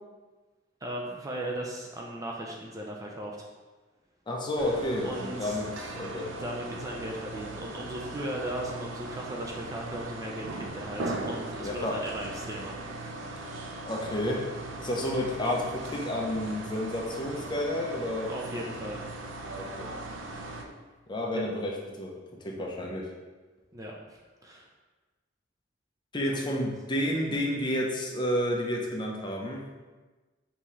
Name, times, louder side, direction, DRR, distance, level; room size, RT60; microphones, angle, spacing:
voice 1, 0.8-3.5 5.0-5.6 6.4-12.8 13.2-13.5 18.3-19.0 21.3-21.5 23.7-24.7 26.3-26.5, right 1 dB, 20° right, -1 dB, 0.4 m, -37 dB
voice 2, 4.3-6.3 11.6-12.0 13.8-14.4 14.8-18.3 19.6-19.9 21.1-22.1 22.4-23.1 26.1-29.6, left 1 dB, 25° left, -1 dB, 0.6 m, -30 dB
sound 1, 4.6-20.6, right 2 dB, 90° right, 0.5 m, -39 dB
5.5 x 2.8 x 3.1 m, 1.3 s
head